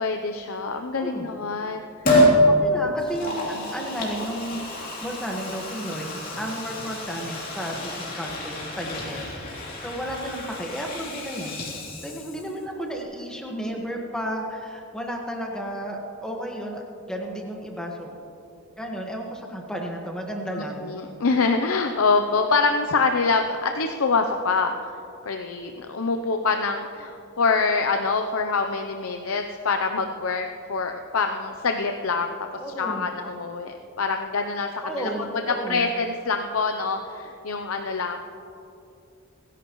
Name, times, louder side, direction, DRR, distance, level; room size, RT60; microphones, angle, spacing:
voice 1, 0.0-1.8 3.5-3.7 20.8-24.9 25.2-32.3 32.8-34.7 35.0-35.1 35.7-38.2, left 4 dB, 85° left, 5 dB, 0.7 m, -25 dB
Liquid, 2.0-2.4 3.0-12.6 12.9-13.0, equal, 40° left, 3.0 m, -28 dB
voice 2, 2.5-11.7 12.0-18.1 18.8-20.8 32.6-33.1 34.8-35.9, equal, 5° left, 0 dB, 1.5 m, -33 dB
30.0 x 11.0 x 3.1 m, 2.7 s
head